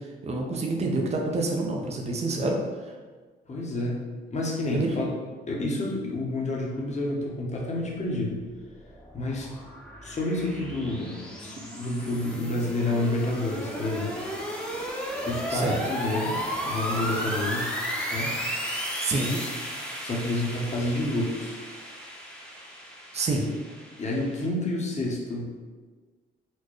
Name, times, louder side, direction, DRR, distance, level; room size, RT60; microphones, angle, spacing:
voice 1, 0.0-2.6 4.7-4.9 15.5-15.8 19.0-19.4 23.1-23.5, right 2 dB, 35° right, 1 dB, 0.6 m, -27 dB
voice 2, 3.5-4.1 4.3-5.1 5.5-8.4 9.1-9.5 10.0-14.1 15.2-17.7 18.1-18.3 20.0-21.6 24.0-25.6, left 2 dB, 35° left, -2 dB, 0.9 m, -29 dB
sound 1, 8.4-24.5, equal, 5° left, 0.8 m, -34 dB
4.3 x 2.1 x 3.1 m, 1.4 s
cardioid pair, 90°, 20 cm